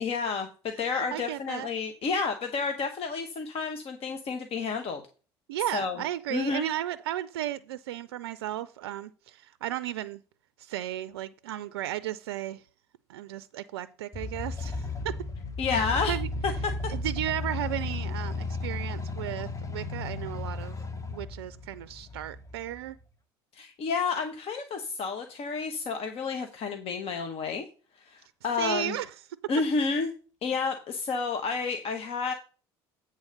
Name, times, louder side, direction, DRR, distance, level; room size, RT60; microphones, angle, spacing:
voice 1, 0.0-5.0 5.7-6.0 6.3-6.7 15.6-16.1 16.6-16.7 23.5-27.7 28.0-29.0 29.5-30.1 30.4-32.3, left 5 dB, 50° left, 1.2 m, -30 dB
voice 2, 0.9-1.7 5.5-10.2 10.6-12.6 13.1-15.2 15.7-16.3 16.9-20.8 21.1-23.0 28.6-29.1, right 12 dB, 85° right, 0.4 m, -34 dB
sound 1, 14.1-23.0, left 3 dB, 25° left, 1.2 m, -34 dB
8.3 x 4.0 x 6.5 m
hypercardioid pair, 70°, 13 cm